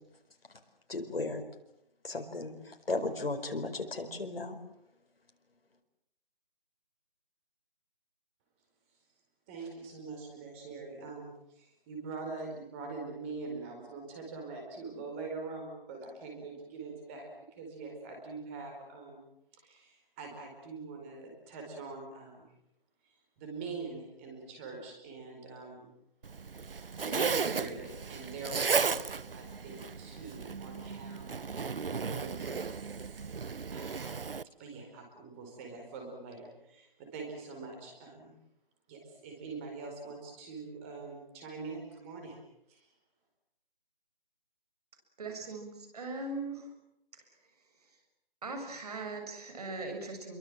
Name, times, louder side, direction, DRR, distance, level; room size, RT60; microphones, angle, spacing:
voice 1, 0.9-1.4 2.0-4.6, left 2 dB, 80° left, 5 dB, 4.9 m, -35 dB
voice 2, 9.5-17.2 17.5-19.2 19.5-22.5 23.0-25.9 27.0-33.3 33.7-38.3 38.9-42.4 42.7-42.9, right 4 dB, 15° right, 2 dB, 4.7 m, -44 dB
Zipper (clothing), 26.2-34.4, right 5 dB, 70° right, 1.0 m, -35 dB
voice 3, 45.2-46.7 47.1-47.2 47.8-48.0 48.4-50.4, right 3 dB, 40° right, 4 dB, 7.0 m, -40 dB
28.5 x 23.0 x 7.6 m, 0.80 s
figure-of-eight pair, 165°, 29 cm